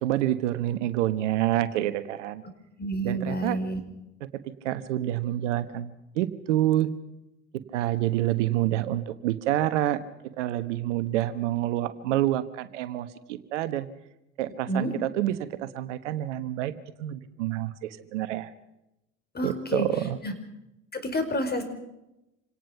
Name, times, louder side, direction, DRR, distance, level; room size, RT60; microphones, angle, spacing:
voice 1, 0.0-2.4 3.0-3.6 4.2-6.9 7.7-10.0 10.4-13.9 14.4-16.7 17.0-18.5 19.4-20.2, right 13 dB, 80° right, 12 dB, 1.2 m, -28 dB
voice 2, 2.8-3.8 14.7-14.9 19.3-19.9 20.2-20.3 20.9-21.6, equal, 25° left, 8 dB, 4.9 m, -29 dB
27.0 x 18.0 x 5.8 m, 0.91 s
hypercardioid pair, 65°, 36 cm